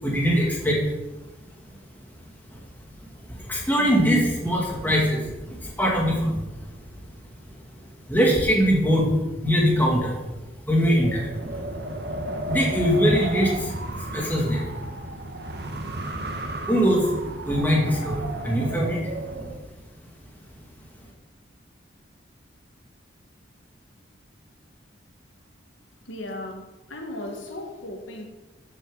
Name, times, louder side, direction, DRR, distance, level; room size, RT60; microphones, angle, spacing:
voice 1, 0.0-0.9 2.5-2.6 3.3-6.7 8.1-10.2 10.7-11.7 12.5-13.7 14.0-14.7 16.4-17.1 17.4-19.0, equal, 10° left, -3 dB, 2.4 m, -22 dB
Wind, 10.9-19.6, right 1 dB, 55° right, 1.1 m, -33 dB
voice 2, 26.0-28.3, left 1 dB, 80° left, 2 dB, 1.6 m, -36 dB
13.5 x 7.2 x 4.0 m, 1.1 s
head